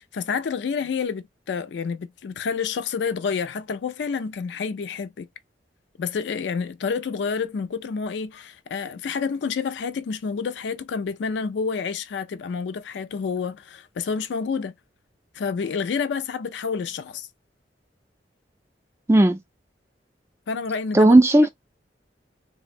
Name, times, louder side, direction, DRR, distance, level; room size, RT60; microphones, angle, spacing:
voice 1, 0.1-5.3 6.0-14.7 15.3-17.3 20.5-21.1, left 5 dB, 70° left, 0.4 m, -29 dB
voice 2, 19.1-19.4 20.9-21.5, right 1 dB, 15° right, 0.4 m, -14 dB
3.5 x 2.1 x 2.4 m
head